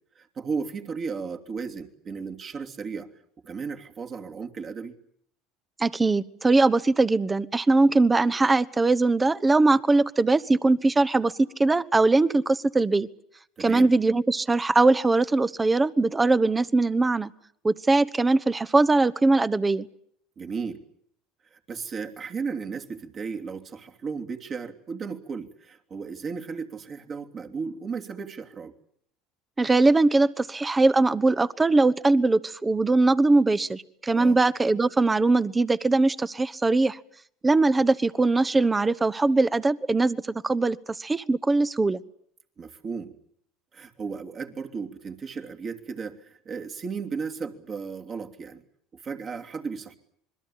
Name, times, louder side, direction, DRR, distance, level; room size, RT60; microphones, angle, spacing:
voice 1, 0.1-3.1 3.4-5.0 13.6-13.9 20.4-20.8 21.5-28.7 34.1-34.4 42.6-43.2 43.7-48.6 48.9-49.9, right 5 dB, 40° right, 3 dB, 3.0 m, -35 dB
voice 2, 5.8-13.1 13.6-17.3 17.6-19.9 29.6-37.0 37.4-42.0, right 3 dB, 20° right, 17 dB, 1.1 m, -21 dB
27.0 x 21.5 x 8.6 m, 0.67 s
hypercardioid pair, 80°, 0 cm